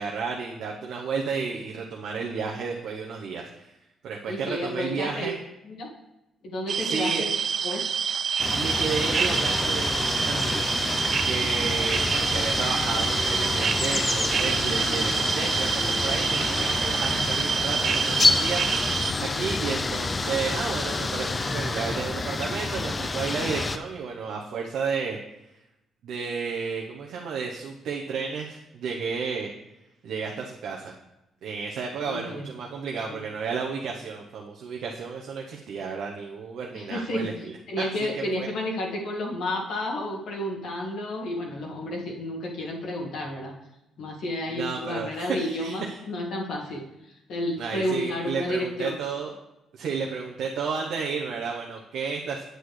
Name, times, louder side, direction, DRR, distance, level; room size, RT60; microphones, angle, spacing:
voice 1, 0.0-3.7 4.0-5.4 6.8-7.2 8.5-10.7 11.2-25.2 26.0-29.5 30.0-30.9 31.4-38.5 44.5-46.0 47.6-49.3 49.7-52.5, right 5 dB, 75° right, 0 dB, 0.8 m, -32 dB
voice 2, 4.3-5.3 5.7-5.9 6.4-7.4 7.6-7.8 32.1-32.5 33.1-33.3 36.7-37.3 37.7-43.5 44.0-46.8 47.3-49.0, left 1 dB, 75° left, -2 dB, 1.8 m, -31 dB
sound 1, 6.7-19.1, right 6 dB, 55° right, 0.4 m, -27 dB
sound 2, 8.4-23.8, left 3 dB, 25° left, 0.5 m, -28 dB
8.4 x 7.8 x 3.2 m, 0.92 s
cardioid pair, 90°, 0 cm